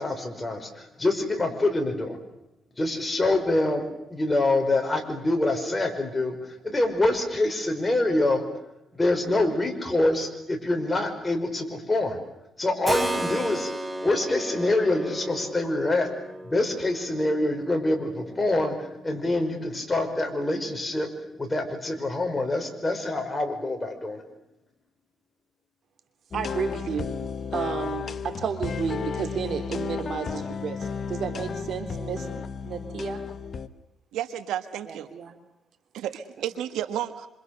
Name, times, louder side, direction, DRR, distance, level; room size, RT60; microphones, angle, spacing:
voice 1, 0.0-2.2 2.8-8.4 8.9-12.2 12.6-13.8 14.0-16.1 16.5-21.1 21.4-24.2, left 2 dB, 20° left, 5 dB, 5.5 m, -25 dB
Keyboard (musical), 12.9-21.5, right 1 dB, 15° right, 2.6 m, -35 dB
sound 1, 26.3-33.7, left 6 dB, 45° left, 1.5 m, -33 dB
voice 2, 26.3-27.2 27.5-33.2 34.9-35.3, right 7 dB, 60° right, 8 dB, 3.4 m, -32 dB
voice 3, 34.1-35.1 35.9-37.3, right 11 dB, 85° right, 11 dB, 1.5 m, -32 dB
27.0 x 26.0 x 6.8 m, 0.87 s
cardioid pair, 90°, 0 cm